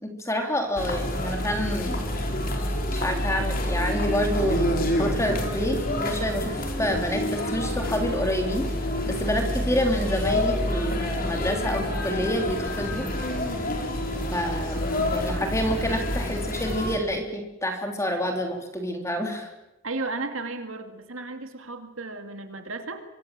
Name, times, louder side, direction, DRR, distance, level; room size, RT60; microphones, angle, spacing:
voice 1, 0.0-2.0 2.9-13.1 14.3-19.5, equal, 15° left, 4 dB, 3.3 m, -28 dB
sound 1, 0.8-17.0, left 1 dB, 45° left, 4.1 m, -28 dB
voice 2, 19.8-23.0, right 3 dB, 70° right, 7 dB, 2.4 m, -34 dB
25.0 x 24.0 x 7.5 m, 0.99 s
head